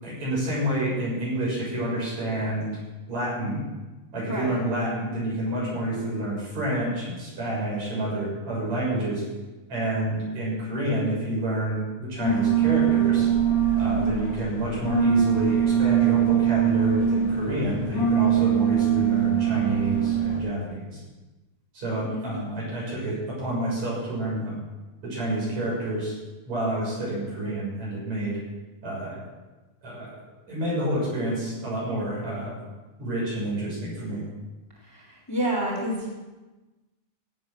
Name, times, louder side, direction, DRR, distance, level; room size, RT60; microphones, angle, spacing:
voice 1, 0.0-2.7 3.1-3.6 4.1-9.2 9.7-13.3 13.8-21.0 21.7-24.6 25.0-26.1 26.5-28.4 28.8-29.2 29.8-30.1 30.5-32.6 33.0-34.2, right 1 dB, 65° right, -6 dB, 8.2 m, -29 dB
sound 1, 12.2-20.4, right 8 dB, 85° left, 6.7 m, -22 dB
voice 2, 22.0-22.5 34.8-36.1, equal, 5° left, -6 dB, 4.1 m, -29 dB
17.0 x 9.4 x 6.4 m, 1.2 s
omnidirectional pair, 3.4 m